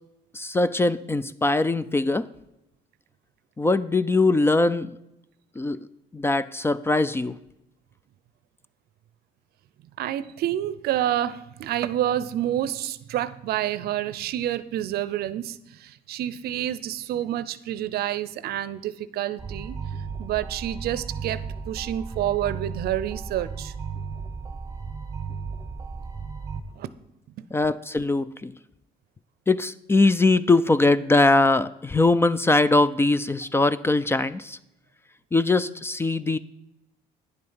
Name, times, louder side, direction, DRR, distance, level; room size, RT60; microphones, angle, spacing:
voice 1, 0.3-2.3 3.6-4.9 5.6-5.8 6.1-7.4 27.5-28.5 29.5-34.6 35.3-36.4, left 2 dB, 15° left, 16 dB, 0.3 m, -21 dB
voice 2, 10.0-19.8 20.2-23.7 26.7-26.9 27.4-27.5, right 12 dB, 65° right, 16 dB, 0.6 m, -28 dB
sound 1, 19.4-26.6, right 5 dB, 20° right, 1.0 m, -35 dB
9.8 x 7.7 x 5.6 m, 0.87 s
cardioid pair, 110°, 17 cm